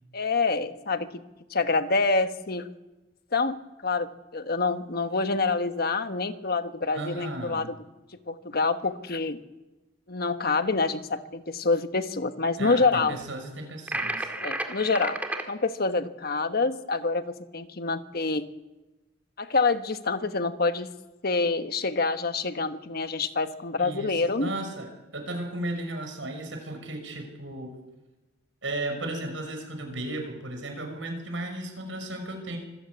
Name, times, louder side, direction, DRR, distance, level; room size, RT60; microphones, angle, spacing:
voice 1, 0.1-1.2 1.5-2.7 3.3-3.6 3.8-4.1 4.3-7.7 8.3-9.4 10.1-13.2 14.4-15.2 15.5-18.5 19.4-20.9 21.2-24.5, left 3 dB, 55° left, 9 dB, 1.2 m, -26 dB
voice 2, 6.9-7.7 12.6-14.3 23.8-27.7 28.6-32.6, right 1 dB, 85° right, 4 dB, 6.0 m, -35 dB
sound 1, 13.9-15.5, right 1 dB, 10° right, 2.0 m, -31 dB
25.5 x 14.5 x 8.5 m, 1.1 s
head